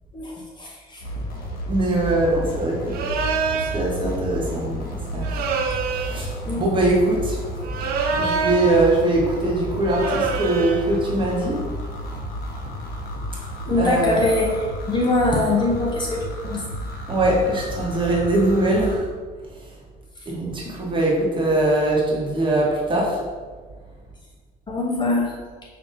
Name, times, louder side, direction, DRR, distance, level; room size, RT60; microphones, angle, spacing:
voice 1, 0.1-1.0 6.5-6.7 13.7-14.5 14.9-16.6 24.7-25.3, left 2 dB, 25° left, -3 dB, 0.8 m, -23 dB
sound 1, 1.0-19.0, equal, 60° left, 0.9 m, -32 dB
voice 2, 1.7-3.0 3.6-4.8 5.1-5.5 5.9-7.4 8.2-11.6 13.8-14.2 17.1-19.1 20.3-23.2, right 1 dB, 30° right, -3 dB, 1.1 m, -22 dB
sound 2, 2.9-3.8 5.2-6.3 7.6-8.9 9.9-10.9, right 5 dB, 65° right, 0.4 m, -25 dB
5.3 x 2.8 x 2.6 m, 1.4 s
cardioid pair, 110°, 17 cm